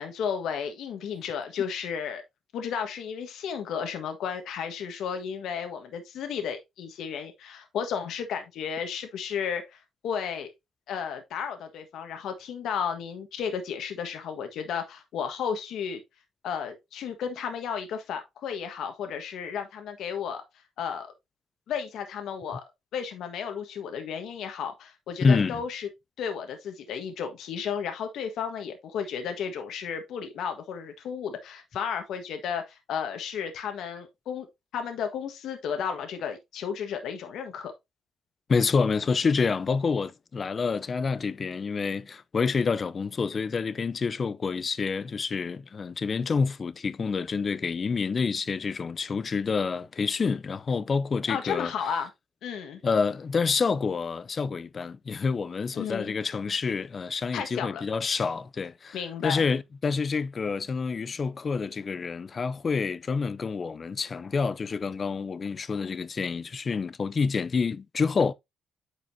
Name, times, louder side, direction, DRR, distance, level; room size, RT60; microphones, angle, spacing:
voice 1, 0.0-2.2 2.5-10.5 10.9-16.0 16.4-20.4 20.8-21.1 21.7-22.6 22.9-25.9 26.2-34.5 34.7-37.7 51.3-52.1 52.4-52.8 55.7-56.2 57.3-57.8 58.9-59.4, left 7 dB, 75° left, 1.4 m, -33 dB
voice 2, 25.2-25.6 38.5-51.7 52.8-68.3, left 5 dB, 40° left, 0.6 m, -28 dB
9.2 x 5.0 x 2.7 m
cardioid pair, 90°, 0 cm